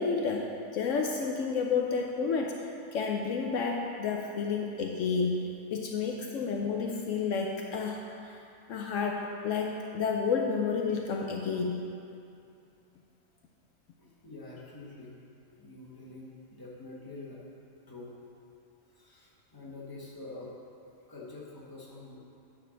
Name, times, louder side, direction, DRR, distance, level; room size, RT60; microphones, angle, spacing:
voice 1, 0.0-2.6 2.9-5.4 5.7-8.4 8.7-11.8, left 5 dB, 75° left, 1 dB, 0.9 m, -30 dB
voice 2, 14.0-15.2 15.6-17.4 17.9-18.1 18.9-20.5 21.1-22.2, left 2 dB, 15° left, -5 dB, 1.3 m, -46 dB
9.1 x 4.2 x 6.3 m, 2.6 s
omnidirectional pair, 1.4 m